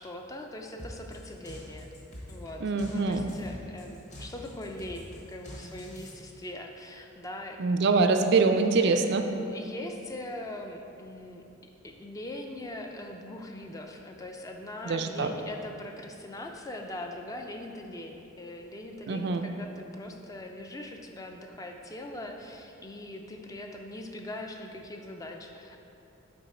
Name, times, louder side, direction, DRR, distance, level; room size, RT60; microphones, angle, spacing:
voice 1, 0.0-1.9 2.3-2.6 2.9-7.7 8.8-9.1 9.5-11.4 11.8-25.8, left 1 dB, 15° left, 3 dB, 0.4 m, -41 dB
sound 1, 0.8-6.1, equal, 35° left, 1.1 m, -44 dB
voice 2, 2.6-3.3 7.6-9.3 14.9-15.3 19.1-19.4, right 4 dB, 55° right, 6 dB, 0.4 m, -24 dB
6.9 x 4.9 x 4.2 m, 2.7 s
head